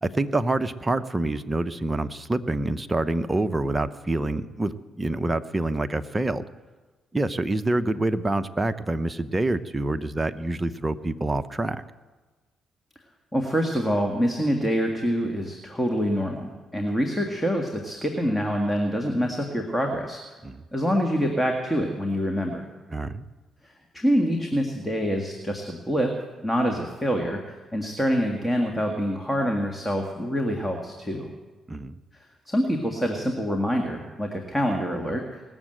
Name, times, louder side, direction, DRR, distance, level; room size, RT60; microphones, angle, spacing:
voice 1, 0.0-6.4 7.1-11.8 20.4-20.6 22.9-23.2 31.7-32.0, right 2 dB, 20° right, 10 dB, 0.8 m, -26 dB
voice 2, 13.3-20.2 20.7-22.6 23.6-26.2 26.4-27.4 27.7-31.3 32.5-35.4, equal, 10° left, 2 dB, 1.8 m, -26 dB
19.0 x 7.2 x 7.8 m, 1.3 s
supercardioid pair, 60°, 0 cm